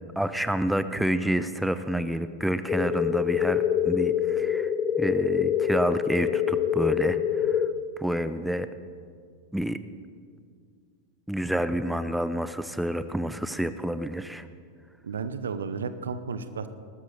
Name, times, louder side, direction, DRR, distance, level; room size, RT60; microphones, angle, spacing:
voice 1, 0.2-4.7 5.0-7.7 8.0-8.7 9.5-9.8 11.3-14.5, right 1 dB, ahead, 12 dB, 0.5 m, -28 dB
sound 1, 2.7-7.7, left 9 dB, 20° left, 0.9 m, -25 dB
voice 2, 15.0-16.7, right 5 dB, 70° right, 12 dB, 0.8 m, -33 dB
20.0 x 12.5 x 4.1 m, 2.1 s
figure-of-eight pair, 90°, 0 cm